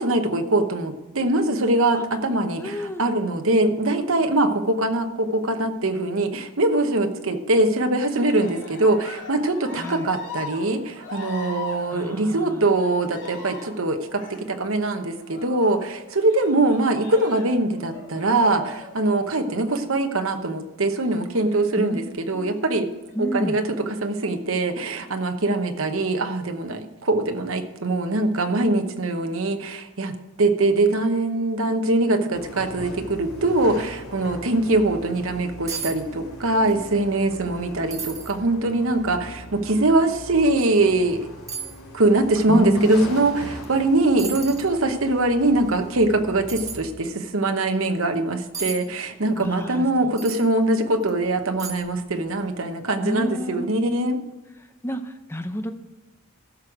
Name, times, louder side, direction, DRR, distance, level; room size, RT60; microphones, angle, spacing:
voice 1, 0.0-22.9 23.2-41.3 41.9-54.2, right 2 dB, 65° right, 6 dB, 1.1 m, -22 dB
voice 2, 2.6-3.0 9.7-10.1 11.9-12.7 21.8-22.0 22.3-22.7 23.1-23.6 42.5-43.1 49.4-50.1 53.0-53.7 54.8-55.7, equal, 10° left, 8 dB, 0.6 m, -29 dB
Cheering, 7.9-19.6 20.9-21.8 22.5-23.1, left 4 dB, 55° left, 3.0 m, -41 dB
sound 1, 32.3-46.9, left 1 dB, 90° left, 2.5 m, -40 dB
sound 2, 35.7-36.0 36.2-36.8 37.2-37.3 37.9-38.3 39.0-39.1 40.6-40.7 41.5-41.8 43.6-43.8 44.2-44.7 46.5-46.8 48.5-48.8 50.2-50.5 51.0-51.1 51.6-52.0 52.3-52.4, right 5 dB, 15° right, 1.0 m, -33 dB
15.5 x 6.3 x 4.9 m, 1.1 s
head